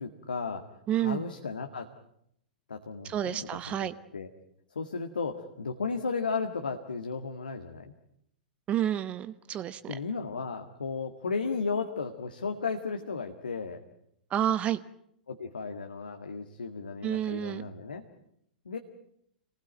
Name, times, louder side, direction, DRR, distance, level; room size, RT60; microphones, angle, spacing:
voice 1, 0.0-0.7 0.9-1.9 2.7-4.3 4.7-7.9 9.9-13.8 15.3-18.0 18.7-18.8, left 4 dB, 70° left, 5 dB, 1.8 m, -34 dB
voice 2, 0.9-1.2 3.0-3.9 8.7-10.0 14.3-14.8 17.0-17.7, right 11 dB, 25° right, 14 dB, 0.9 m, -30 dB
27.5 x 19.5 x 9.0 m, 0.74 s
figure-of-eight pair, 100°, 5 cm